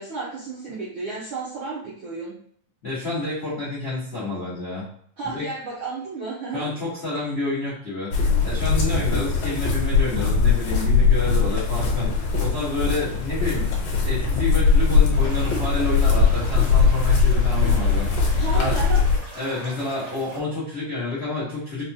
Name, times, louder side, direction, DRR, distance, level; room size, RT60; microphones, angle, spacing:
voice 1, 0.0-2.3 5.2-6.7 18.3-19.0, right 4 dB, 75° right, -7 dB, 1.1 m, -32 dB
voice 2, 2.8-4.9 5.3-5.5 6.5-8.1 8.4-18.7 19.3-21.9, left 2 dB, 85° left, -7 dB, 0.5 m, -29 dB
sound 1, 8.1-19.2, left 5 dB, 65° left, 1.8 m, -20 dB
sound 2, 15.1-20.4, right 1 dB, 55° right, 0.9 m, -42 dB
5.1 x 2.3 x 2.7 m, 0.62 s
omnidirectional pair, 3.5 m